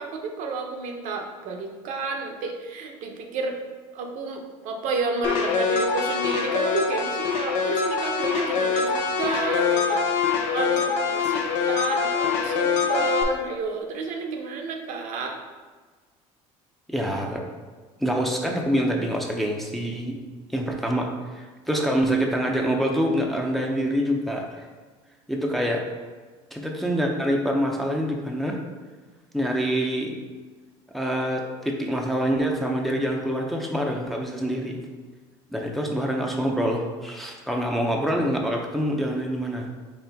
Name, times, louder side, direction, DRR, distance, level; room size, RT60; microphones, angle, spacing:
voice 1, 0.0-3.6 3.9-10.0 10.4-15.4, right 3 dB, 70° right, 2 dB, 0.7 m, -31 dB
sound 1, 5.2-13.2, left 5 dB, 80° left, 0.7 m, -24 dB
voice 2, 16.9-17.5 18.0-20.2 20.5-24.6 25.3-25.8 26.5-28.6 29.3-30.2 30.9-34.8 35.5-39.7, equal, ahead, 0 dB, 0.5 m, -26 dB
4.3 x 3.5 x 3.4 m, 1.4 s
cardioid pair, 115°, 14 cm